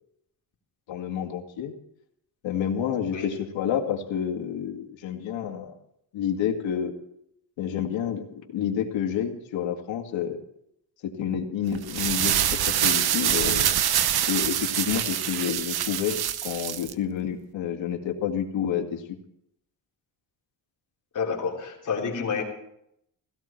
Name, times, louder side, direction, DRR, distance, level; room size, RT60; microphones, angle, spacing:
voice 1, 0.9-1.7 2.4-5.7 6.1-6.9 7.6-10.4 11.0-13.8 14.3-19.0, left 8 dB, 90° left, 3 dB, 2.2 m, -29 dB
sound 1, 11.7-16.9, right 10 dB, 60° right, 0.9 m, -25 dB
voice 2, 21.1-22.4, left 5 dB, 45° left, -1 dB, 3.6 m, -29 dB
16.5 x 16.0 x 4.5 m, 0.76 s
cardioid pair, 155°, 44 cm